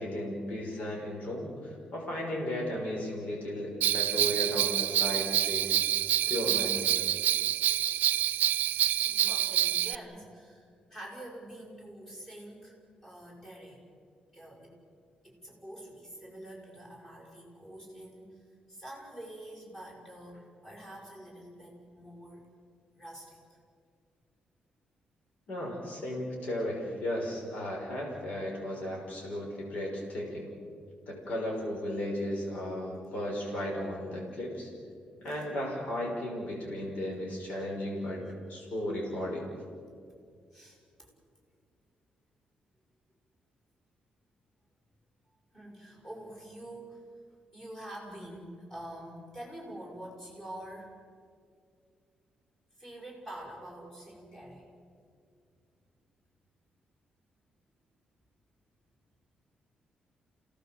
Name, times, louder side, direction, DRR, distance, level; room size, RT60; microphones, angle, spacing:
voice 1, 0.0-5.7 6.3-7.0 25.5-30.5 31.1-34.7 35.2-38.2 38.5-39.5, left 1 dB, 60° left, -2 dB, 5.8 m, -35 dB
Bell, 3.8-10.0, right 12 dB, 90° right, 0.5 m, -27 dB
voice 2, 8.9-13.8 14.3-14.8 15.2-22.4 23.0-23.6 35.3-35.5 37.6-37.7 38.9-39.0 40.5-41.1 45.5-47.0 47.5-50.9 52.8-54.7, right 1 dB, 15° left, -2 dB, 6.2 m, -46 dB
28.5 x 18.0 x 7.9 m, 2.3 s
cardioid pair, 150°, 3 cm